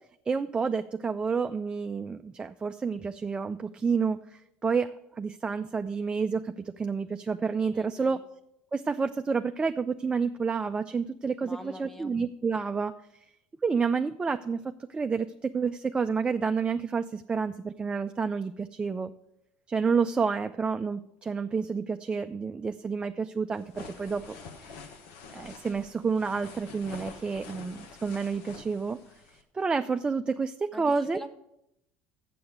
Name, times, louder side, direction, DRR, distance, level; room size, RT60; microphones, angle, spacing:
voice 1, 0.3-8.2 8.7-12.9 13.6-19.1 19.7-24.8 25.3-29.0 29.5-31.2, right 5 dB, 20° right, 7 dB, 0.4 m, -29 dB
voice 2, 7.7-8.2 11.4-12.2 30.7-31.3, equal, 5° left, 8 dB, 1.1 m, -43 dB
sound 1, 23.5-29.4, left 5 dB, 75° left, 1.2 m, -47 dB
7.1 x 6.8 x 7.9 m, 0.82 s
supercardioid pair, 95°, 5 cm